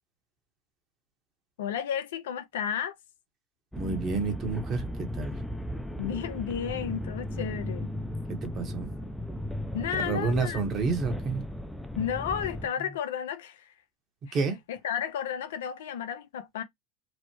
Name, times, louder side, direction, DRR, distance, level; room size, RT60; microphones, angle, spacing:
voice 1, 1.6-3.0 6.0-7.9 9.7-10.6 12.0-13.7 14.3-14.4 14.7-16.6, left 9 dB, 75° left, 0.5 m, -32 dB
sound 1, 3.7-12.7, left 1 dB, ahead, 0.5 m, -36 dB
voice 2, 3.8-5.4 8.3-8.9 10.0-11.4 14.3-14.6, right 4 dB, 40° right, 1.0 m, -29 dB
3.1 x 2.1 x 2.9 m
hypercardioid pair, 85°, 0 cm